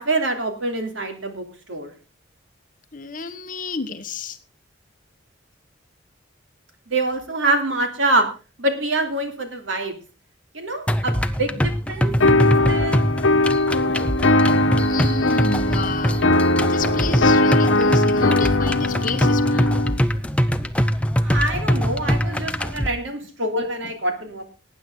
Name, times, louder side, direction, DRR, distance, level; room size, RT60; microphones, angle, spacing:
voice 1, 0.0-1.9 6.9-8.3 8.6-10.0 10.5-12.1 12.4-13.0 21.2-24.4, right 2 dB, 75° right, 6 dB, 2.9 m, -25 dB
voice 2, 2.9-4.4 14.8-16.3 16.7-19.7 23.8-23.9, left 4 dB, 40° left, 9 dB, 1.2 m, -30 dB
sound 1, 10.9-22.9, equal, 5° left, 0.7 m, -23 dB
sound 2, 12.2-20.0, left 2 dB, 80° left, 1.1 m, -20 dB
18.5 x 9.4 x 3.8 m, 0.32 s
head